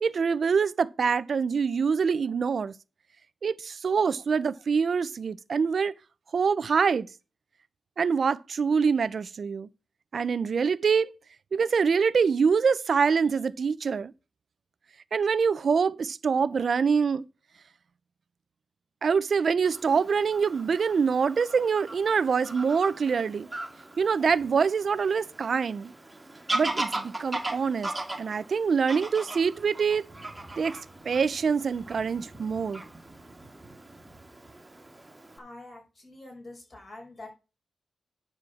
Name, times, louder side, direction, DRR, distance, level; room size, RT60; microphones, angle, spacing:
voice 1, 0.0-2.7 3.4-5.9 6.3-7.1 8.0-9.7 10.1-11.1 11.5-14.1 15.1-17.2 19.0-23.5 24.0-25.9 26.5-27.9 28.2-30.1 30.6-30.8 31.0-32.8, right 6 dB, 55° right, 0.6 m, -25 dB
Fowl / Bird vocalization bird call bird song, 19.6-35.4, right 2 dB, 15° right, 1.7 m, -39 dB
voice 2, 35.4-37.3, left 2 dB, 40° left, 5.4 m, -45 dB
9.8 x 4.5 x 7.0 m
wide cardioid pair, 150°, 0 cm